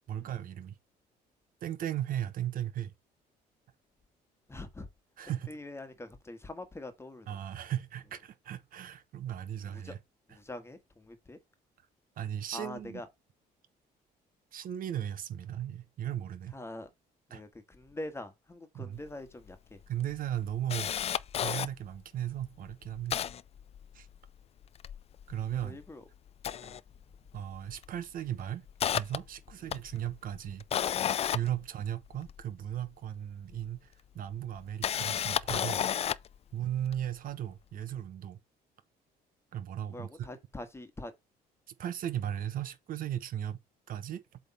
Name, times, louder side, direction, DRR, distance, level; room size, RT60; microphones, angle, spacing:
voice 1, 0.1-0.8 1.6-2.9 5.2-5.6 7.3-10.0 10.3-10.4 12.2-13.0 14.5-16.6 17.3-17.4 18.7-19.0 19.9-20.9 21.4-23.2 23.9-24.1 25.3-25.8 26.6-26.7 27.3-28.6 28.9-30.6 31.3-35.9 36.5-38.4 39.5-40.3 41.8-43.6 43.9-44.2, right 11 dB, 55° right, 0.9 m, -36 dB
voice 2, 4.5-4.9 5.5-7.3 9.7-9.9 10.3-10.8 11.1-11.4 12.5-13.1 16.5-16.9 17.3-19.8 25.6-26.0 26.6-26.8 39.9-41.1, left 2 dB, 15° left, 1.5 m, -43 dB
Camera, 19.1-19.2 19.5-19.6 20.0-21.7 22.3-22.4 22.7-24.3 24.6-25.9 26.3-27.4 27.7-28.0 28.4-32.4 33.5-33.6 34.5-36.3 36.9-37.0, left 9 dB, 40° left, 0.4 m, -33 dB
8.0 x 3.5 x 4.3 m
cardioid pair, 110°, 17 cm